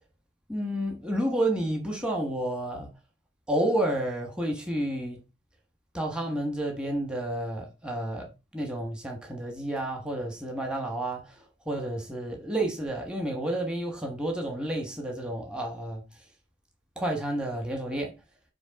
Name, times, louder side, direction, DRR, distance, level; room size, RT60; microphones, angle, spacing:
voice 1, 0.5-2.9 3.5-5.2 5.9-16.0 17.0-18.1, right 1 dB, 5° right, 1.3 m, -30 dB
7.3 x 3.2 x 5.1 m
head